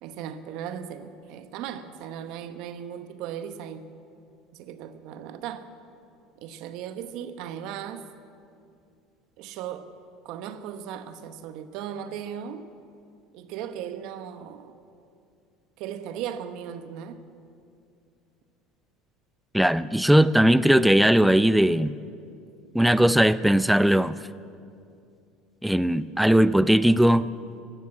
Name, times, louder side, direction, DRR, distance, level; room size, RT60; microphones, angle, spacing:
voice 1, 0.0-3.8 4.5-5.7 6.4-8.1 9.4-9.9 10.2-12.7 13.3-14.8 15.8-17.2, right 9 dB, 65° right, 10 dB, 1.0 m, -37 dB
voice 2, 19.5-21.9 22.7-24.2 25.6-27.3, right 1 dB, 5° right, 16 dB, 0.4 m, -19 dB
14.0 x 12.0 x 7.6 m, 2.5 s
supercardioid pair, 100°, 0 cm